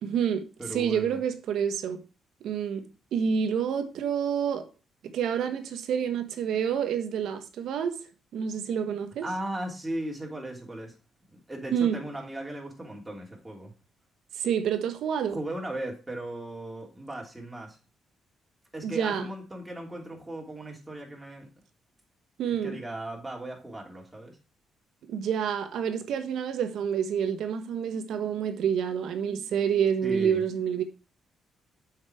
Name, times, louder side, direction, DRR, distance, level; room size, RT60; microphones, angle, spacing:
voice 1, 0.0-2.0 2.4-4.7 5.0-8.0 8.3-9.2 11.7-12.0 14.4-15.4 18.8-19.2 22.4-22.8 25.1-30.8, right 8 dB, 75° right, 1.4 m, -28 dB
voice 2, 0.6-1.2 9.2-10.9 11.3-13.7 15.3-17.8 18.7-21.5 22.6-24.4 30.0-30.4, right 1 dB, 10° right, 3.0 m, -37 dB
7.8 x 5.8 x 4.7 m
cardioid pair, 90°, 0 cm